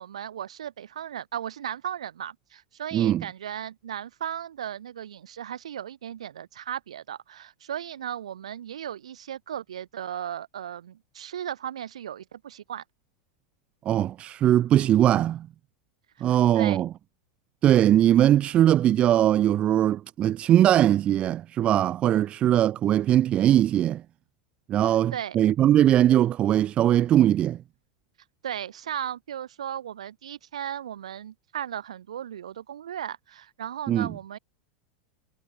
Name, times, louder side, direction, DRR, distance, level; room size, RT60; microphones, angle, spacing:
voice 1, 0.0-12.8 16.2-16.8 24.8-25.4 28.4-34.4, right 10 dB, 70° right, 4.2 m, -36 dB
voice 2, 2.9-3.2 13.9-15.5 16.2-16.9 17.6-24.0 24.7-27.6 33.9-34.1, right 11 dB, 35° right, 0.7 m, -20 dB
figure-of-eight pair, 85°, 3 cm